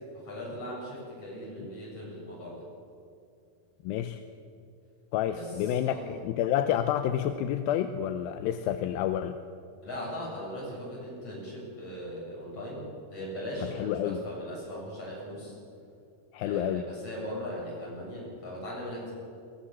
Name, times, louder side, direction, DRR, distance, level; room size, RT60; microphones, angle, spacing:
voice 1, 0.2-2.6 5.4-5.5 5.8-6.0 9.8-15.6 16.4-19.1, equal, 40° left, -5 dB, 8.8 m, -39 dB
voice 2, 3.8-4.2 5.1-9.4 13.6-14.2 16.3-16.9, left 10 dB, 85° left, 9 dB, 2.5 m, -29 dB
22.0 x 19.0 x 7.3 m, 2.5 s
omnidirectional pair, 4.2 m